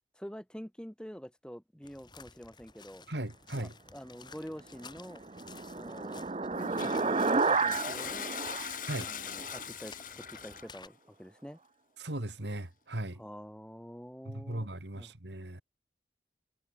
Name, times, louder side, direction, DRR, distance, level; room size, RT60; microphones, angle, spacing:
voice 1, 0.1-3.0 3.5-5.2 5.7-6.2 6.7-8.3 9.0-11.6 13.2-15.1, equal, 5° left, 2.4 m, -47 dB
sound 1, 1.8-10.9, left 5 dB, 25° left, 7.7 m, -53 dB
voice 2, 3.1-3.7 8.9-9.1 12.0-13.2 14.3-15.6, right 1 dB, 75° right, 2.5 m, -37 dB
sound 2, 4.9-9.6, right 4 dB, 35° right, 0.7 m, -32 dB
Toilet flush, 6.5-10.8, left 7 dB, 45° left, 7.5 m, -41 dB
head